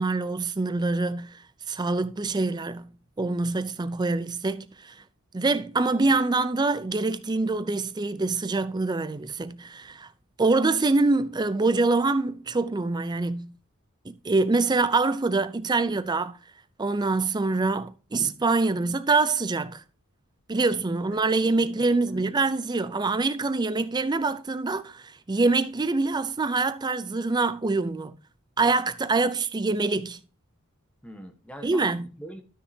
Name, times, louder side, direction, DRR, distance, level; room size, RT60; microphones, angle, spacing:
voice 1, 0.0-2.9 3.2-5.0 5.3-10.1 10.4-13.6 14.1-16.4 16.8-19.8 20.5-28.1 28.6-30.2 31.6-32.1, right 3 dB, 20° right, 0.4 m, -25 dB
voice 2, 21.6-22.4 31.0-32.4, equal, 5° left, 1.1 m, -44 dB
12.5 x 6.4 x 2.7 m
head